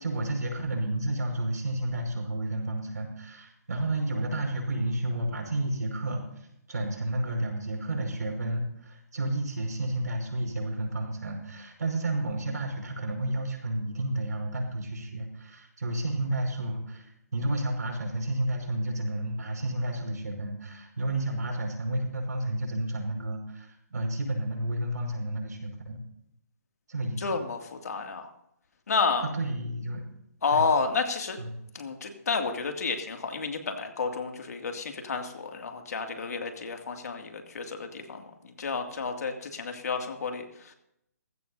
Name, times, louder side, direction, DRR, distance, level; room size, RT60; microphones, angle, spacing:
voice 1, 0.0-17.1 17.3-26.0 26.9-27.4 29.2-30.0 30.5-30.7 31.4-31.5, right 1 dB, 85° right, 2 dB, 5.3 m, -31 dB
voice 2, 27.2-28.3 28.9-29.3 30.4-31.4 31.7-40.7, left 4 dB, 70° left, 4 dB, 2.4 m, -30 dB
19.0 x 15.5 x 2.7 m, 0.79 s
hypercardioid pair, 155°, 9 cm